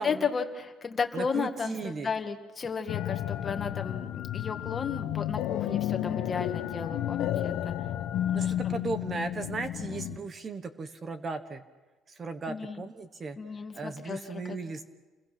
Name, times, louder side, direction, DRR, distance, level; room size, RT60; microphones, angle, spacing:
voice 1, 0.0-7.7 8.3-8.7 9.9-10.0 12.5-12.8 13.4-14.4, left 5 dB, 25° left, 5 dB, 2.1 m, -34 dB
voice 2, 1.1-2.1 8.3-11.6 12.1-13.4 13.7-14.8, right 3 dB, 30° right, 10 dB, 1.3 m, -36 dB
sound 1, 2.9-10.2, left 12 dB, 70° left, 1.3 m, -32 dB
29.5 x 22.0 x 6.1 m, 1.2 s
cardioid pair, 145°, 0 cm